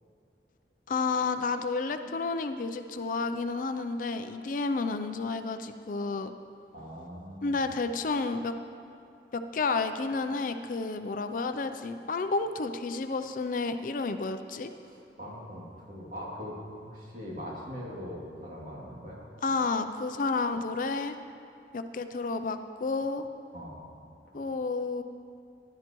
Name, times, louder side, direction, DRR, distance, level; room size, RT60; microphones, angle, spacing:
voice 1, 0.9-6.3 7.4-8.5 9.3-14.7 19.4-21.1 21.7-23.2 24.3-25.0, left 3 dB, 50° left, 9 dB, 0.4 m, -31 dB
voice 2, 6.7-7.6 14.8-19.2 23.5-23.8, equal, 50° right, -5 dB, 2.5 m, -41 dB
14.5 x 11.5 x 3.0 m, 2.4 s
head